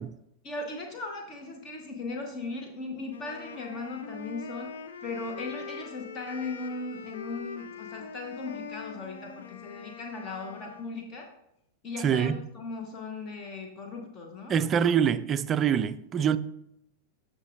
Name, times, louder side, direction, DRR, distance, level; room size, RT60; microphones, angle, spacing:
voice 1, 0.4-4.8 5.0-11.3 11.8-14.6, left 3 dB, 30° left, 1.1 m, -38 dB
Wind instrument woodwind instrument, 3.1-11.0, left 6 dB, 60° left, 0.7 m, -43 dB
voice 2, 12.0-12.4 14.5-16.4, right 8 dB, 25° right, 0.4 m, -24 dB
14.0 x 5.2 x 2.5 m
figure-of-eight pair, 90°, 0 cm